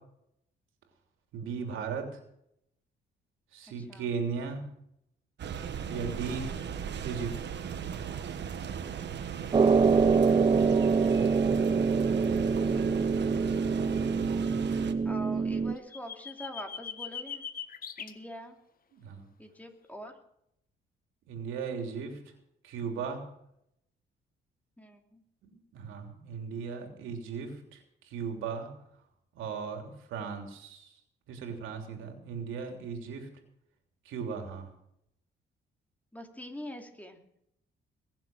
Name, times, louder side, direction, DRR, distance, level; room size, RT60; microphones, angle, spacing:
voice 1, 1.3-2.1 3.5-4.6 5.9-6.5 7.0-7.3 18.9-19.3 21.3-22.2 22.6-23.2 25.4-28.7 29.3-30.9 31.3-33.3 34.0-34.7, right 6 dB, 85° right, 4 dB, 3.3 m, -37 dB
voice 2, 3.8-4.1 15.0-17.4 18.0-18.6 19.4-20.1 24.8-25.2 36.1-37.2, equal, 5° left, 3 dB, 2.8 m, -44 dB
sound 1, 5.4-14.9, right 7 dB, 60° right, 1.5 m, -37 dB
sound 2, 9.5-15.7, right 5 dB, 25° right, 0.7 m, -25 dB
sound 3, 15.8-18.1, left 7 dB, 45° left, 1.3 m, -40 dB
22.0 x 7.4 x 6.3 m, 0.75 s
cardioid pair, 90°, 20 cm